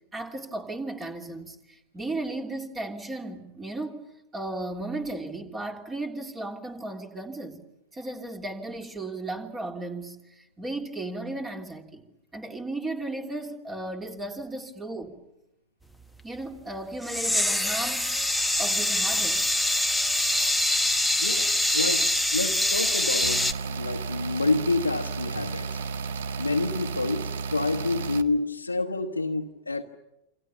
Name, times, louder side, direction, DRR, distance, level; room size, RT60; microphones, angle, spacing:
voice 1, 0.1-4.0 4.3-7.6 7.9-12.0 12.3-15.2 16.2-18.1 18.6-19.4, right 2 dB, 15° right, 3.2 m, -35 dB
sound 1, 17.0-23.5, left 1 dB, ahead, 1.2 m, -24 dB
voice 2, 21.2-25.8 26.4-29.8, left 3 dB, 80° left, 1.2 m, -28 dB
sound 2, 23.2-28.2, right 5 dB, 60° right, 1.1 m, -33 dB
28.5 x 27.0 x 7.0 m
figure-of-eight pair, 90°, 0 cm